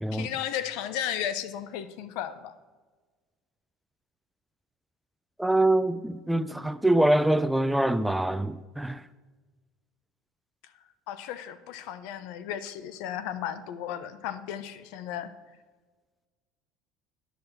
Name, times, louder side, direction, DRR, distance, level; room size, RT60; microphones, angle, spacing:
voice 1, 0.1-2.5 11.1-15.3, left 10 dB, 75° left, 0.6 m, -34 dB
voice 2, 5.4-9.0, right 1 dB, 5° right, 0.3 m, -24 dB
10.0 x 5.0 x 6.3 m
supercardioid pair, 125°, 0 cm